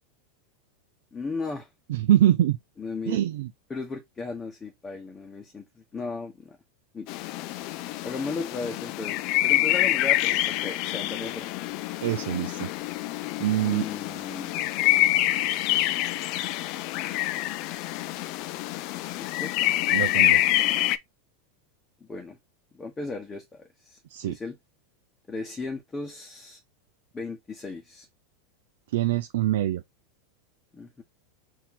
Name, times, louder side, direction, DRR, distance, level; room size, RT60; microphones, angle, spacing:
voice 1, 1.1-1.7 2.8-3.2 3.7-6.6 6.9-7.1 8.0-11.7 13.6-14.7 19.2-19.5 22.0-22.4 22.7-24.6 25.3-26.6 27.1-28.1 30.7-31.0, left 3 dB, 15° left, 1.0 m, -36 dB
voice 2, 1.9-2.6 3.1-3.5 12.0-12.7 13.4-13.9 19.9-20.4 24.1-24.4 28.9-29.8, right 12 dB, 75° right, 0.4 m, -24 dB
sound 1, 7.1-21.0, left 15 dB, 55° left, 0.4 m, -26 dB
4.4 x 2.7 x 3.7 m
supercardioid pair, 120°, 0 cm